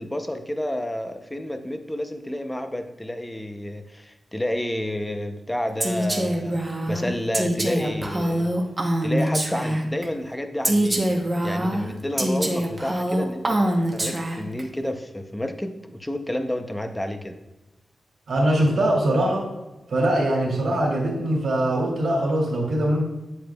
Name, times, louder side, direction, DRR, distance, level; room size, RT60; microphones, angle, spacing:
voice 1, 0.0-6.6 6.9-8.5 9.0-11.1 11.4-17.4, left 1 dB, 10° left, 7 dB, 0.6 m, -30 dB
Female speech woman speaking, 5.8-10.0 10.6-14.6, right 1 dB, 20° right, 0.9 m, -24 dB
voice 2, 18.3-19.5 19.9-23.0, right 1 dB, 70° right, -2 dB, 2.3 m, -22 dB
8.6 x 7.8 x 2.3 m, 1.0 s
wide cardioid pair, 155°, 0 cm